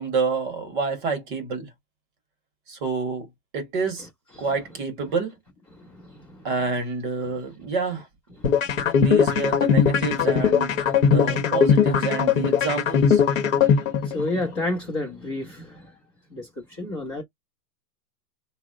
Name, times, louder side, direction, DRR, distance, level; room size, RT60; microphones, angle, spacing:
voice 1, 0.0-1.7 2.7-3.3 3.5-4.1 4.4-5.3 6.4-8.0 8.9-13.2, right 4 dB, 30° right, 0.9 m, -28 dB
sound 1, 8.4-14.5, left 7 dB, 50° left, 0.9 m, -20 dB
voice 2, 14.0-15.7 16.3-16.5 16.8-17.2, left 2 dB, 20° left, 0.7 m, -29 dB
3.4 x 2.1 x 3.6 m
hypercardioid pair, 165°, 49 cm